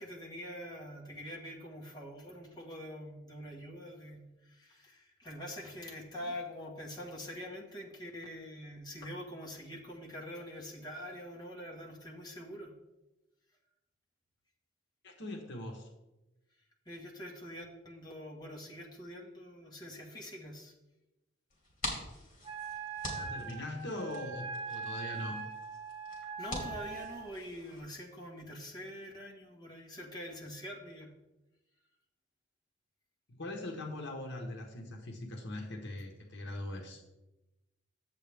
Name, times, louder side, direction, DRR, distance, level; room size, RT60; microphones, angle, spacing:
voice 1, 0.0-12.7 16.8-20.7 26.4-31.1, equal, 20° left, -3 dB, 1.5 m, -45 dB
voice 2, 15.0-15.9 23.1-25.4 33.3-37.0, left 1 dB, 65° left, 2 dB, 1.2 m, -41 dB
sound 1, 21.5-27.8, left 1 dB, 45° left, 3.0 m, -44 dB
Wind instrument woodwind instrument, 22.4-27.3, right 5 dB, 30° right, 1.1 m, -41 dB
10.5 x 7.8 x 3.5 m, 1.0 s
head